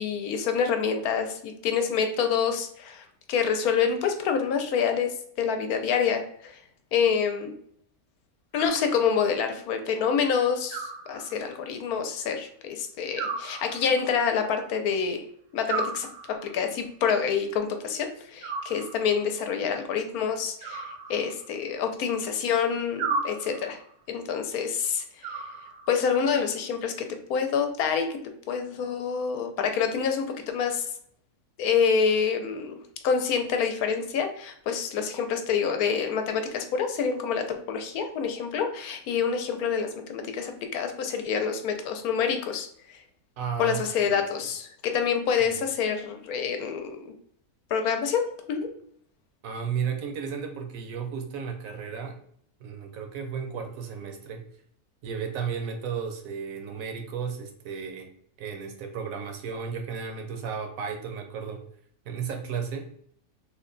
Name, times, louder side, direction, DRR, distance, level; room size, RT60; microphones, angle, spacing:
voice 1, 0.0-6.6 6.9-7.5 8.5-15.2 15.5-23.8 24.1-25.4 25.9-28.2 28.5-30.9 31.6-32.8 33.0-43.0 43.6-47.0 47.7-48.7, left 6 dB, 80° left, 6 dB, 1.0 m, -27 dB
Animal, 8.6-9.4 10.7-11.7 13.2-14.2 15.7-16.7 18.4-19.3 20.6-21.7 23.0-23.9 25.2-26.1, right 4 dB, 90° right, 1.5 m, -35 dB
voice 2, 43.4-43.8 44.1-44.2 49.4-52.2 52.6-54.5 55.0-58.1 58.4-61.6 62.1-62.9, right 6 dB, 70° right, 4 dB, 1.0 m, -34 dB
3.3 x 2.2 x 3.7 m, 0.65 s
omnidirectional pair, 1.6 m